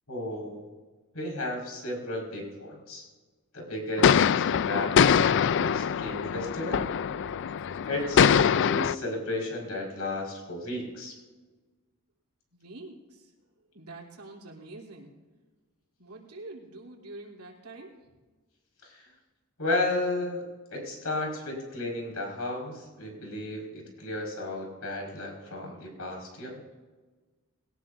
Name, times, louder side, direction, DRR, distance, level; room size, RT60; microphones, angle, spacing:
voice 1, 0.1-0.6 1.1-3.1 3.5-6.8 7.8-11.2 18.8-19.1 19.6-20.4 20.7-26.6, left 2 dB, 75° left, -1 dB, 5.2 m, -34 dB
sound 1, 4.0-9.0, left 7 dB, 55° left, 0.4 m, -23 dB
voice 2, 12.5-13.3 13.7-15.1 16.0-18.1, right 2 dB, 75° right, -2 dB, 3.3 m, -46 dB
21.0 x 18.5 x 2.7 m, 1.3 s
head